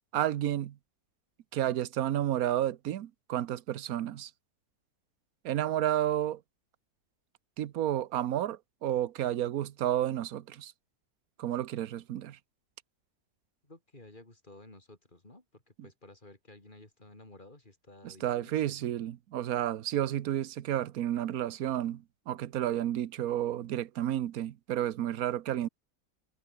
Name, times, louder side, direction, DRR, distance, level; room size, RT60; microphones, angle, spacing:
voice 1, 0.1-0.7 1.5-4.3 5.4-6.4 7.6-10.7 11.4-12.4 18.0-25.7, right 12 dB, 65° right, 1.3 m, -31 dB
voice 2, 13.6-18.9, left 2 dB, 30° left, 4.6 m, -54 dB
omnidirectional pair, 1.7 m